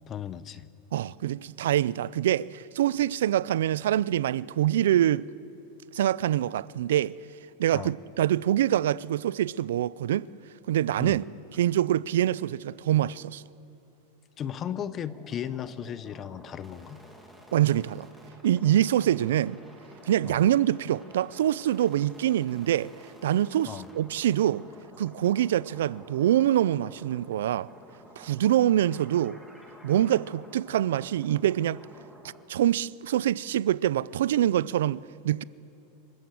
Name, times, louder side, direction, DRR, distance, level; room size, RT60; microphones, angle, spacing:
voice 1, 0.1-0.7 7.7-7.9 11.0-11.2 14.4-17.0 20.2-20.4 23.6-23.9, left 9 dB, 25° left, 0.7 m, -36 dB
voice 2, 0.9-5.2 5.9-7.1 7.6-10.3 10.7-11.2 11.6-13.4 17.5-18.1 18.4-19.6 20.1-22.9 23.2-24.6 25.0-27.7 28.2-29.4 29.8-31.8 32.5-35.4, right 12 dB, 85° right, 0.4 m, -25 dB
sound 1, 14.6-32.4, equal, ahead, 2.4 m, -51 dB
27.0 x 14.5 x 7.7 m
supercardioid pair, 150°, 0 cm